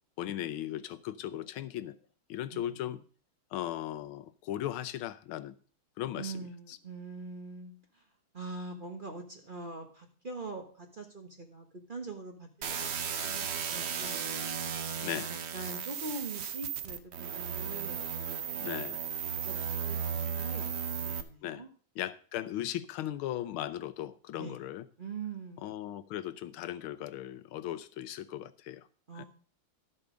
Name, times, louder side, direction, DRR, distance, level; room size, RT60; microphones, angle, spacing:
voice 1, 0.2-2.0 2.3-3.0 3.5-5.5 6.0-6.3 15.0-15.3 18.6-19.0 21.4-21.6 22.0-24.8 25.6-28.8 29.2-29.3, left 12 dB, 90° left, 1.6 m, -37 dB
voice 2, 2.5-3.0 6.1-8.0 8.3-14.2 15.3-18.6 19.0-20.0 20.4-21.7 24.4-24.6 25.0-25.8 29.1-29.3, right 3 dB, 30° right, 1.1 m, -44 dB
sound 1, 12.6-21.2, right 7 dB, 85° right, 0.5 m, -35 dB
12.5 x 7.0 x 5.0 m
omnidirectional pair, 2.2 m